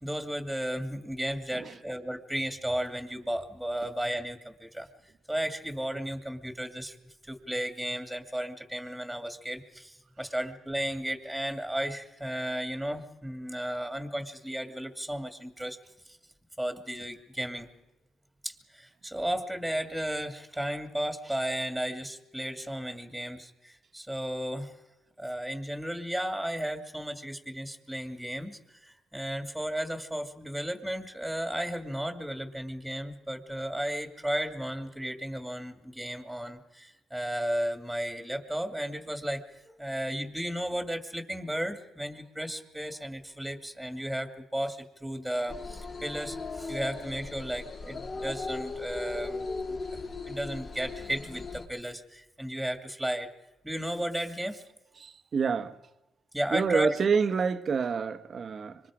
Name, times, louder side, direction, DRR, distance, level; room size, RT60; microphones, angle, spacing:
voice 1, 0.0-7.0 7.2-15.8 16.0-16.2 16.6-17.7 18.4-24.8 25.2-53.3 53.6-54.6 56.3-56.9, equal, ahead, 2.4 m, -34 dB
sound 1, 45.5-51.7, left 3 dB, 45° left, 3.7 m, -38 dB
voice 2, 55.0-55.8 56.5-58.8, right 5 dB, 45° right, 1.2 m, -27 dB
26.0 x 24.5 x 5.0 m
cardioid pair, 90°, 0 cm